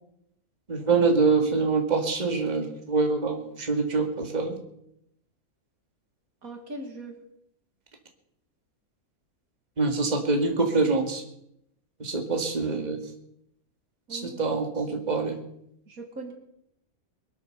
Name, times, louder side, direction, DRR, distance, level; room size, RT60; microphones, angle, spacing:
voice 1, 0.7-4.6 9.8-11.2 12.0-13.0 14.1-15.4, right 4 dB, 30° right, 4 dB, 2.1 m, -25 dB
voice 2, 6.4-7.2 14.1-14.4 15.9-16.3, right 2 dB, 70° right, 4 dB, 2.7 m, -39 dB
23.0 x 8.5 x 6.7 m, 0.76 s
omnidirectional pair, 1.6 m